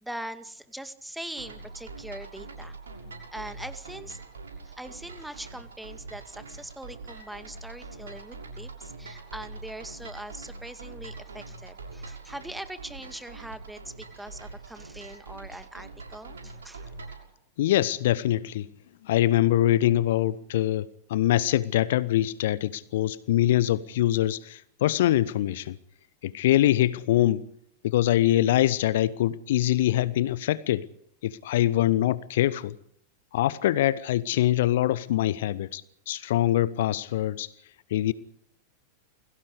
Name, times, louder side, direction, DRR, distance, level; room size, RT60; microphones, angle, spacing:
voice 1, 0.0-2.8 3.3-4.2 4.6-16.9, right 1 dB, 5° right, 2.1 m, -42 dB
sound 1, 1.4-17.2, right 3 dB, 70° right, 6.5 m, -43 dB
voice 2, 17.6-18.7 19.0-25.8 26.2-27.4 27.8-30.9 31.2-32.8 33.3-37.5 37.9-38.1, left 13 dB, 55° left, 0.9 m, -24 dB
29.0 x 22.5 x 5.0 m
figure-of-eight pair, 90°, 0 cm